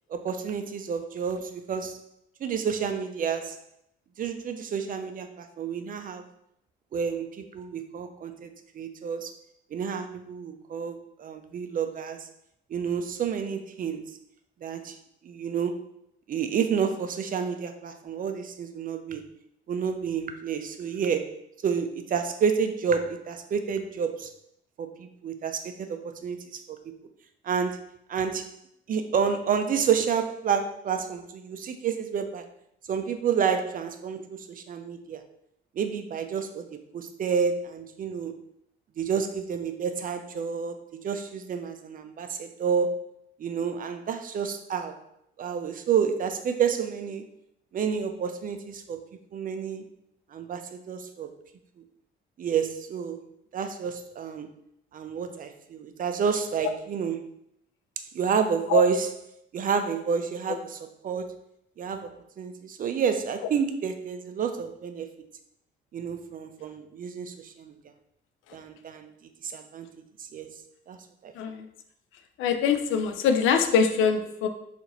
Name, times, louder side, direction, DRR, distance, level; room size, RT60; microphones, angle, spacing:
voice 1, 0.1-2.0 2.4-3.6 4.2-6.3 6.9-9.3 9.7-12.3 12.7-14.2 14.6-15.0 15.2-15.8 16.3-19.2 19.7-21.3 21.6-24.3 24.8-26.9 27.4-27.8 28.1-28.5 28.9-32.5 32.9-35.2 35.8-38.4 39.0-43.1 43.4-45.0 45.4-47.3 47.7-49.0 49.3-49.8 50.3-51.3 52.4-53.2 53.5-54.5 54.9-57.3 58.1-59.1 59.5-60.8 61.0-61.3 61.8-65.1 65.9-67.7 68.5-69.1 69.4-69.9 70.3-70.6 70.9-71.0 71.2-71.3, right 7 dB, 45° right, 8 dB, 0.4 m, -29 dB
voice 2, 71.4-71.7 72.4-74.5, left 6 dB, 85° left, 7 dB, 0.4 m, -23 dB
2.8 x 2.5 x 4.0 m, 0.76 s
cardioid pair, 90°, 20 cm